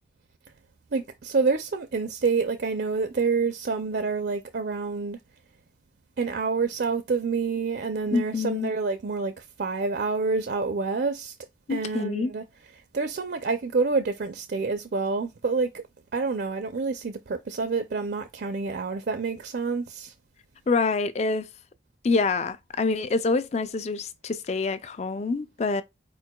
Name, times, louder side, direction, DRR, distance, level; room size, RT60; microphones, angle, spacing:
voice 1, 0.9-5.2 6.2-11.3 11.7-12.4 12.9-15.7 16.1-20.1, right 4 dB, 55° right, 0.4 m, -27 dB
voice 2, 8.1-8.7 11.7-12.3 20.7-21.5 22.0-25.8, left 4 dB, 35° left, 0.3 m, -26 dB
4.5 x 4.3 x 2.3 m
head